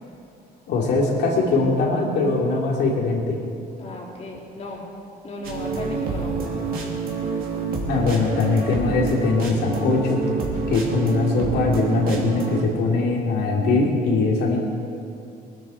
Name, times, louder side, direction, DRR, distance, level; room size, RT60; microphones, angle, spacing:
voice 1, 0.7-3.3 7.9-10.2 10.7-14.6, left 3 dB, 75° left, -1 dB, 3.0 m, -21 dB
voice 2, 3.8-4.9 5.2-6.4, left 2 dB, 40° left, -2 dB, 3.5 m, -35 dB
sound 1, 5.4-12.6, right 4 dB, 60° right, 2.9 m, -27 dB
20.5 x 12.5 x 4.6 m, 2.6 s
cardioid pair, 110°, 17 cm